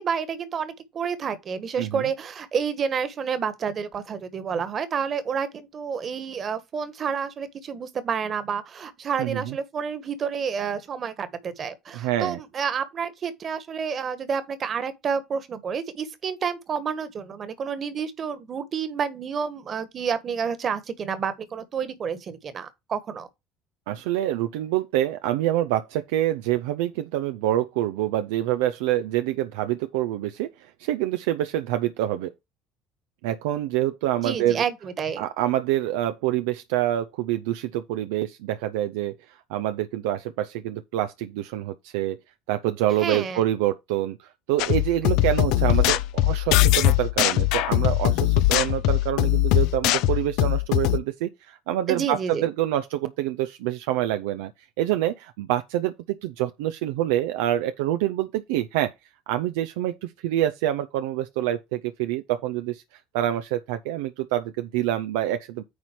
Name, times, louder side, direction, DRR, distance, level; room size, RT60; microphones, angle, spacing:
voice 1, 0.0-23.3 34.2-35.3 43.0-43.4 51.9-52.5, right 6 dB, 40° right, 1.7 m, -29 dB
voice 2, 1.8-2.1 9.2-9.6 11.9-12.4 23.9-32.3 33.2-34.6 35.2-42.2 42.5-54.5 54.8-55.9 56.2-58.9 59.3-62.8 63.1-65.6, right 13 dB, 75° right, 0.6 m, -26 dB
sound 1, 44.6-51.0, left 15 dB, 65° left, 0.6 m, -21 dB
9.5 x 4.2 x 4.6 m
hypercardioid pair, 65°, 0 cm